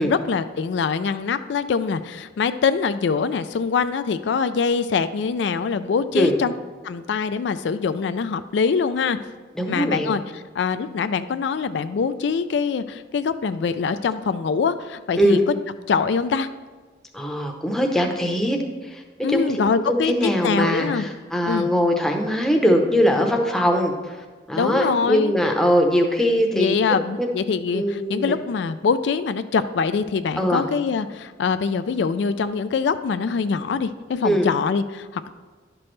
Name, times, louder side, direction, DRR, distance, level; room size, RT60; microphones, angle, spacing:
voice 1, 0.0-6.5 6.8-9.2 9.7-15.4 15.9-16.5 19.2-21.0 21.5-21.7 24.6-25.3 26.5-35.3, left 5 dB, 75° left, 11 dB, 0.3 m, -24 dB
voice 2, 9.6-10.1 15.2-15.4 17.1-19.0 19.3-19.6 19.9-26.8 27.2-27.3 27.7-28.4 30.4-30.6 34.2-34.5, equal, 5° left, 2 dB, 0.7 m, -21 dB
11.5 x 6.0 x 3.2 m, 1.4 s
head